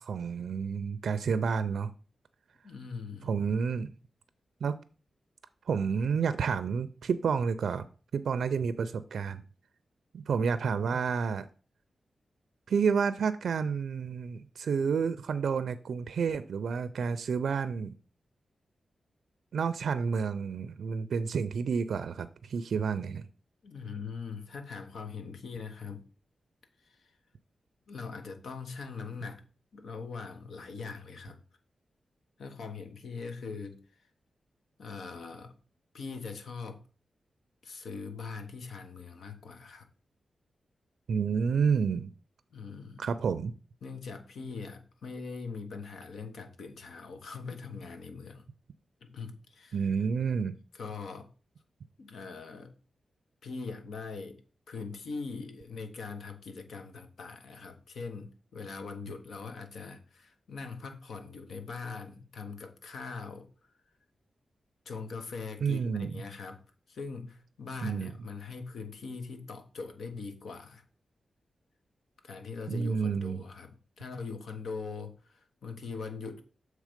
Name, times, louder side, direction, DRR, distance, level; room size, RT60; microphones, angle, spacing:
voice 1, 0.0-1.9 3.2-3.9 4.6-4.8 5.7-7.9 8.1-9.4 10.1-11.5 12.7-17.9 19.5-23.3 41.1-42.1 43.0-43.5 49.7-50.6 65.6-66.2 67.8-68.1 72.7-73.4, right 6 dB, 85° right, 0.4 m, -30 dB
voice 2, 2.6-3.3 23.6-26.1 27.0-27.1 27.9-29.4 29.7-31.4 32.4-33.8 34.8-35.6 35.9-36.8 37.6-39.9 42.5-43.1 43.8-48.5 49.0-49.8 50.7-51.3 52.0-52.7 53.4-54.4 54.7-63.5 64.8-66.6 66.9-70.8 72.2-76.4, left 4 dB, 85° left, 1.0 m, -41 dB
7.4 x 3.2 x 5.0 m
wide cardioid pair, 100°, 0 cm